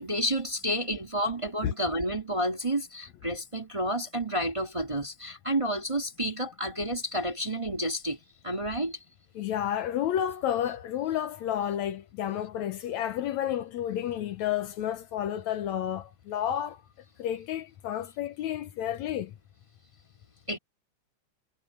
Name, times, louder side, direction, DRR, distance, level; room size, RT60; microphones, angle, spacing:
voice 1, 0.0-8.2 8.4-9.0 20.5-20.6, equal, 10° right, 1.8 m, -30 dB
voice 2, 9.4-16.8 17.2-19.4, left 10 dB, 70° left, 2.1 m, -31 dB
omnidirectional pair, 3.5 m